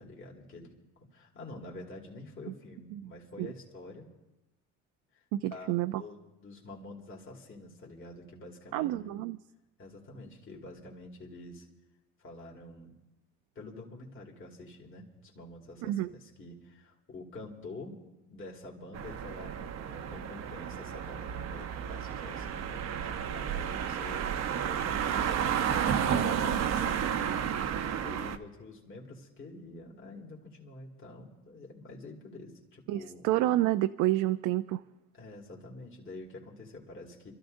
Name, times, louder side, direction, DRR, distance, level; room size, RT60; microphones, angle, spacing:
voice 1, 0.0-4.1 5.1-9.2 9.8-11.7 12.2-13.0 13.5-18.0 18.3-25.0 25.6-33.3 35.1-37.3, left 2 dB, 40° left, -1 dB, 2.6 m, -47 dB
voice 2, 5.3-6.0 8.7-9.4 15.8-16.1 32.9-34.8, right 15 dB, 75° right, 9 dB, 0.5 m, -29 dB
sound 1, 18.9-28.4, right 8 dB, 55° right, 0.8 m, -32 dB
30.0 x 13.5 x 2.6 m, 1.0 s
supercardioid pair, 90°, 31 cm